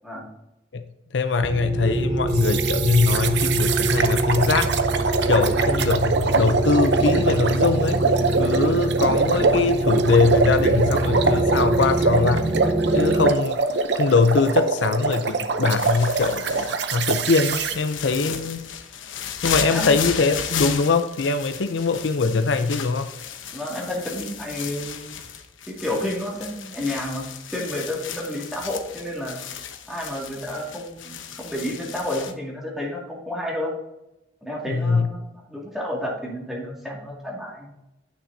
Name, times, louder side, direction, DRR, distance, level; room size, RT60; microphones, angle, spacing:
voice 1, 1.1-4.7 5.3-8.0 8.4-12.5 12.9-13.6 13.9-18.6 19.4-23.1 34.7-35.1, left 4 dB, 70° left, 9 dB, 0.5 m, -22 dB
sound 1, 1.4-13.3, right 2 dB, 25° right, 0.4 m, -24 dB
sound 2, 2.3-17.8, right 4 dB, 60° right, 0.7 m, -24 dB
sound 3, 15.8-32.3, left 8 dB, 85° left, 0.9 m, -34 dB
voice 2, 23.5-25.2 25.7-29.4 29.9-33.7 34.4-37.7, left 1 dB, ahead, -4 dB, 2.2 m, -31 dB
9.8 x 6.1 x 2.7 m, 0.90 s
head